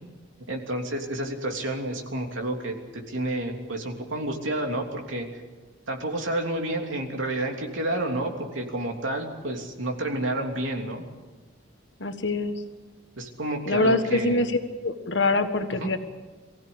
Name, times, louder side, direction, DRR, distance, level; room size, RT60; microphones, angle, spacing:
voice 1, 0.5-5.4 5.9-11.0 13.2-14.4 15.8-15.9, right 1 dB, 80° right, 2 dB, 3.2 m, -30 dB
voice 2, 12.0-12.6 13.7-16.0, left 2 dB, 65° left, 7 dB, 1.5 m, -24 dB
24.0 x 16.0 x 8.8 m, 1.3 s
head